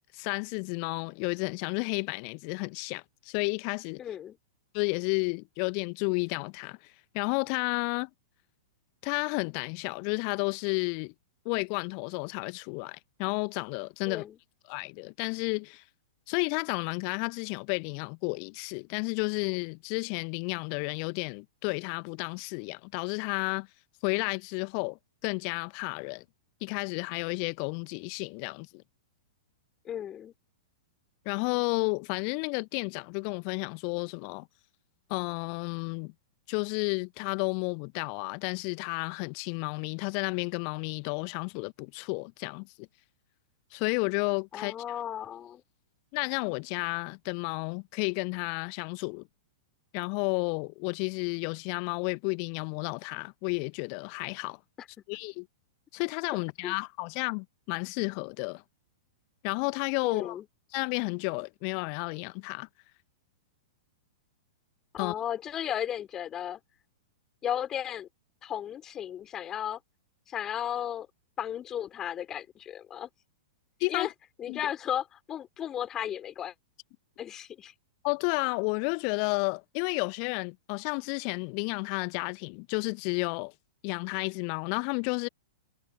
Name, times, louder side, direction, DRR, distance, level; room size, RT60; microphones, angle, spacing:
voice 1, 0.1-4.0 4.7-6.8 7.1-8.1 9.0-11.1 11.4-14.2 14.7-15.8 16.3-23.7 24.0-26.2 26.6-28.8 31.2-34.5 35.1-36.1 36.5-42.9 43.7-44.7 46.1-49.2 49.9-54.6 55.1-55.4 55.9-58.6 59.4-60.4 60.7-62.7 65.0-65.1 73.8-74.1 74.5-74.6 78.0-83.5 83.8-85.3, left 40 dB or more, 40° left, 1.4 m, -32 dB
voice 2, 4.0-4.4 14.1-14.4 29.8-30.3 44.5-45.6 54.8-54.9 56.6-56.7 60.0-60.5 64.9-66.6 67.4-68.1 68.4-69.8 70.3-71.1 71.4-73.1 73.9-74.1 74.4-76.5 77.2-77.7, left 10 dB, 20° left, 3.9 m, -34 dB
figure-of-eight pair, 100°, 2 cm